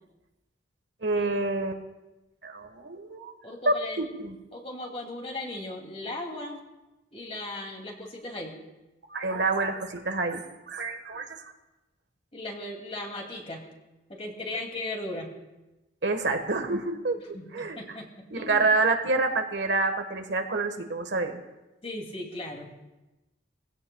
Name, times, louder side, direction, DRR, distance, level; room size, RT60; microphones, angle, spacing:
voice 1, 1.0-1.8 2.4-3.3 3.6-4.4 9.1-11.4 16.0-17.2 17.5-18.0 18.3-21.4, right 3 dB, 80° right, 6 dB, 1.4 m, -28 dB
voice 2, 3.4-4.0 4.5-6.6 7.1-8.6 12.3-13.7 14.1-15.3 17.3-18.7 21.8-22.7, left 2 dB, 35° left, 1 dB, 2.5 m, -37 dB
23.0 x 16.0 x 2.3 m, 1.0 s
head